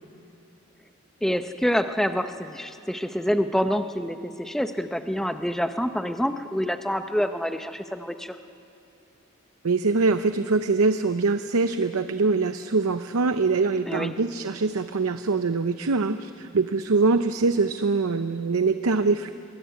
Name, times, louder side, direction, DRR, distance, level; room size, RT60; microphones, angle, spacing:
voice 1, 1.2-8.4 13.9-14.1, equal, ahead, 8 dB, 0.8 m, -27 dB
voice 2, 9.6-19.3, right 4 dB, 85° right, 10 dB, 0.7 m, -23 dB
23.0 x 22.5 x 9.3 m, 2.7 s
head